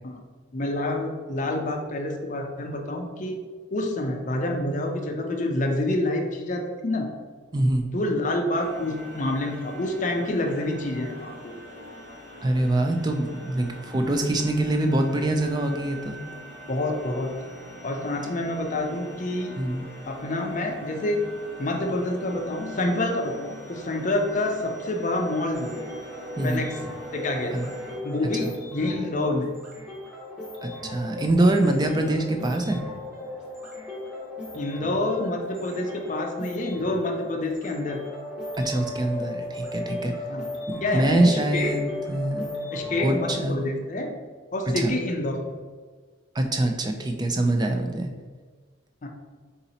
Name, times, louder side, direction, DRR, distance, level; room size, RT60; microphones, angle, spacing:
voice 1, 0.5-3.4 3.7-7.1 7.9-11.5 16.7-17.3 17.8-19.5 20.1-21.3 21.6-25.8 26.4-26.8 27.1-27.6 28.0-29.5 34.5-38.0 40.3-40.5 40.8-41.7 42.7-44.1 44.5-45.4 49.0-49.1, left 1 dB, 40° left, 2 dB, 0.5 m, -27 dB
voice 2, 7.5-7.9 12.4-16.2 19.6-19.9 26.4-26.6 27.5-27.7 28.4-28.5 30.6-32.8 38.6-40.1 40.7-42.5 43.0-43.7 44.8-44.9 46.3-48.1, right 1 dB, 20° right, 4 dB, 0.3 m, -24 dB
sound 1, 8.5-27.9, equal, 55° right, 1.3 m, -43 dB
sound 2, 25.5-43.3, left 1 dB, 5° right, 0.9 m, -36 dB
4.0 x 2.8 x 4.0 m, 1.5 s
head